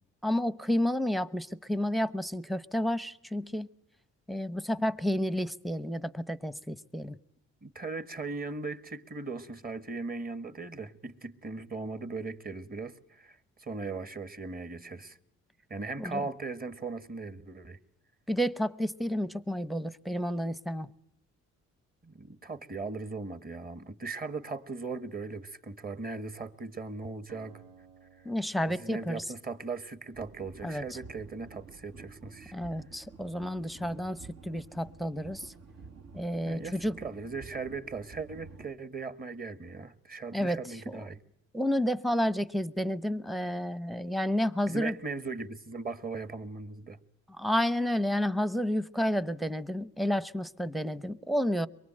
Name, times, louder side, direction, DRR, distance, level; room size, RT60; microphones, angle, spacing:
voice 1, 0.2-3.7 4.3-7.2 16.0-16.2 18.3-20.9 28.2-29.2 30.6-30.8 32.5-34.2 34.4-35.5 36.1-37.0 40.3-41.1 41.5-45.0 47.4-51.7, equal, ahead, 0.9 m, -30 dB
voice 2, 7.6-15.2 15.7-17.8 22.0-27.6 28.8-32.6 36.5-41.2 44.7-47.0, right 4 dB, 30° right, 1.8 m, -38 dB
Acoustic guitar, 27.3-30.9, right 6 dB, 85° right, 3.4 m, -59 dB
sound 1, 30.1-38.7, right 4 dB, 60° right, 2.3 m, -50 dB
24.0 x 23.0 x 7.8 m
cardioid pair, 90°, 30 cm